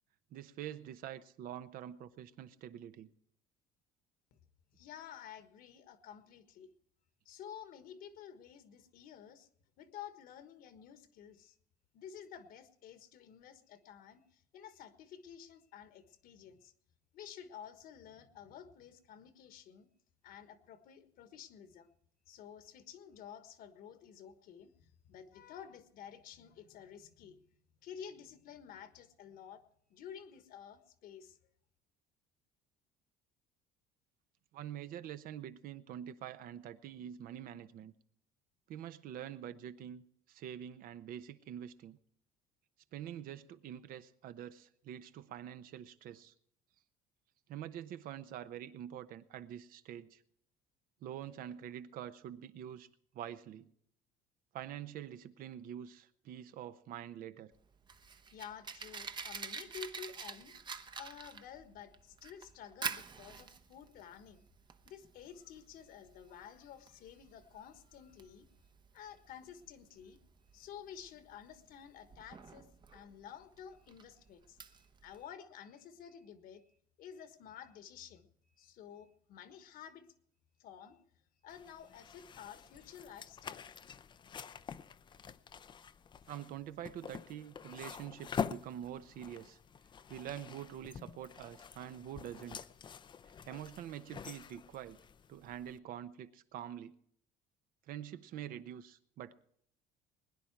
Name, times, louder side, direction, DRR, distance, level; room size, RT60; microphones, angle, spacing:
voice 1, 0.3-3.1 34.5-37.9 38.7-42.0 42.9-46.3 47.5-50.2 51.0-52.9 53.1-53.7 54.5-57.5 86.3-89.6 90.1-92.6 93.4-95.0 95.3-97.0 97.9-99.4, right 10 dB, 60° right, 0.9 m, -46 dB
voice 2, 4.7-6.7 7.2-9.5 9.8-11.5 11.9-16.7 17.1-19.9 20.2-21.9 22.3-27.4 27.8-29.6 29.9-31.4 58.3-60.5 61.0-64.5 64.8-68.5 68.9-70.2 70.5-80.1 80.6-81.0 81.4-83.7, left 8 dB, 60° left, 1.5 m, -52 dB
Fire, 57.5-75.2, right 5 dB, 25° right, 0.8 m, -47 dB
sound 1, 81.5-95.8, left 7 dB, 30° left, 0.5 m, -46 dB
21.0 x 10.0 x 4.6 m
cardioid pair, 115°, 16 cm